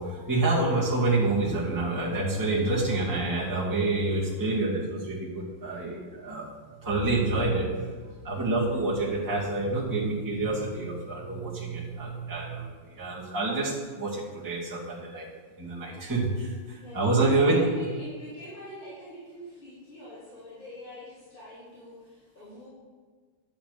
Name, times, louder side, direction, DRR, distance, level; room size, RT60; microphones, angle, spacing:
voice 1, 0.0-6.4 6.8-7.7 8.2-15.3 15.6-17.6, right 2 dB, 10° right, -7 dB, 2.4 m, -27 dB
voice 2, 16.7-22.7, left 1 dB, 25° left, -12 dB, 4.5 m, -43 dB
11.0 x 9.0 x 5.2 m, 1.5 s
omnidirectional pair, 2.2 m